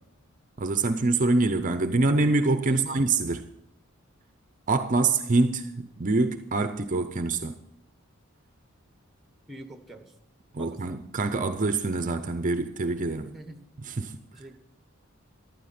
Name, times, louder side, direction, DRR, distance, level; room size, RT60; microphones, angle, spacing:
voice 1, 0.6-3.5 4.7-7.6 10.5-13.3 13.8-14.2, right 3 dB, 40° right, 0.6 m, -25 dB
voice 2, 2.6-3.1 9.5-10.1 10.6-10.8 13.2-13.6 14.3-14.6, right 1 dB, ahead, 1.4 m, -44 dB
14.5 x 11.5 x 4.3 m
head